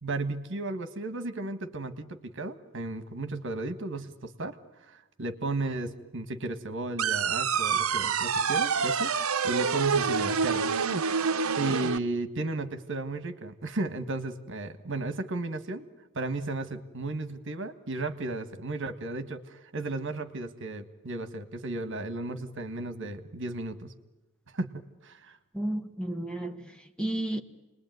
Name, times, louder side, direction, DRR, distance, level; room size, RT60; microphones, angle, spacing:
voice 1, 0.0-10.7 11.6-15.9 16.1-23.9 24.5-25.4, right 2 dB, 60° right, 1.8 m, -34 dB
sound 1, 7.0-12.0, right 6 dB, 80° right, 0.9 m, -27 dB
voice 2, 25.5-27.4, right 1 dB, 5° left, 1.5 m, -32 dB
29.5 x 21.0 x 9.5 m
head